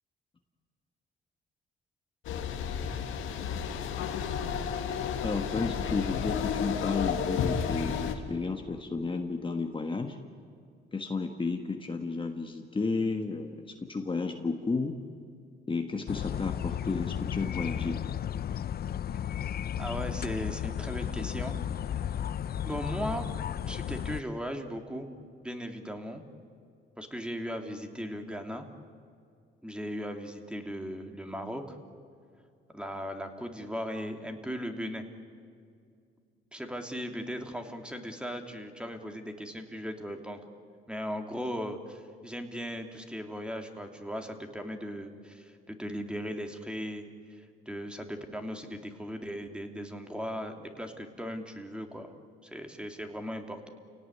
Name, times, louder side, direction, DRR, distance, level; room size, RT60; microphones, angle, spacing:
sound 1, 2.2-8.1, left 7 dB, 90° left, 2.1 m, -32 dB
voice 1, 5.2-10.2 10.9-15.0 15.7-18.0, left 4 dB, 25° left, 4 dB, 1.6 m, -32 dB
sound 2, 16.1-24.2, left 9 dB, 50° left, 0.7 m, -34 dB
voice 2, 19.8-21.6 21.8-22.0 22.6-23.2 23.7-25.1 25.4-26.2 27.0-28.7 29.6-31.8 32.7-35.0 36.5-40.4 40.9-52.1 52.4-53.7, equal, 5° right, 4 dB, 2.8 m, -37 dB
29.0 x 17.5 x 9.9 m, 2.3 s
cardioid pair, 90°, 20 cm